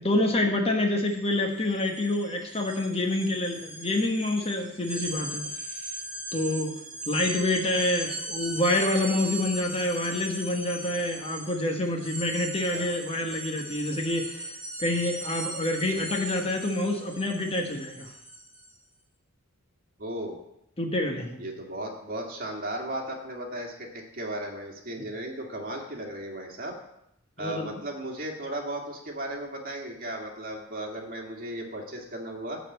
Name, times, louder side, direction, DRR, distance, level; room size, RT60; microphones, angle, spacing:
voice 1, 0.0-5.4 5.7-5.9 6.3-6.7 7.1-18.1 20.8-21.4 27.4-27.7, left 1 dB, 25° left, 2 dB, 1.2 m, -27 dB
sound 1, 1.0-1.2 1.5-18.7, right 2 dB, 5° right, 1.7 m, -38 dB
voice 2, 20.0-20.4 21.4-26.7 27.4-32.6, right 1 dB, 40° right, 0 dB, 2.1 m, -36 dB
12.0 x 4.2 x 7.9 m, 0.80 s
head